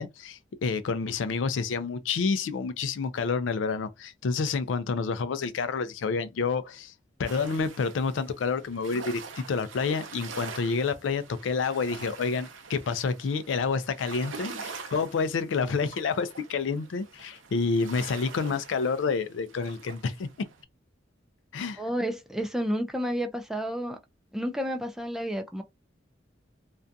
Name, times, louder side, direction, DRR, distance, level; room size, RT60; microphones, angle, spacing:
voice 1, 0.0-6.9 7.2-20.3 21.5-21.8, left 5 dB, 75° left, 0.4 m, -29 dB
sound 1, 7.2-20.6, right 4 dB, 90° right, 0.6 m, -45 dB
voice 2, 21.8-24.0 24.3-25.6, equal, ahead, 0.3 m, -31 dB
2.4 x 2.2 x 2.6 m
head